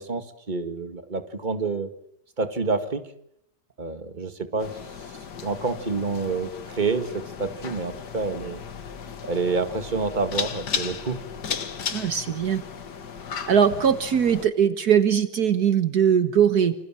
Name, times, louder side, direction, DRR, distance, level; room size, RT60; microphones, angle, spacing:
voice 1, 0.0-1.9 2.4-3.0 3.8-4.8 5.4-8.6 9.2-11.2, right 4 dB, 25° right, 9 dB, 2.2 m, -28 dB
sound 1, 4.6-14.5, left 6 dB, 75° left, 2.2 m, -35 dB
voice 2, 11.9-12.6 13.5-16.7, right 8 dB, 65° right, 11 dB, 1.8 m, -20 dB
28.0 x 26.5 x 7.6 m, 0.70 s
omnidirectional pair, 1.8 m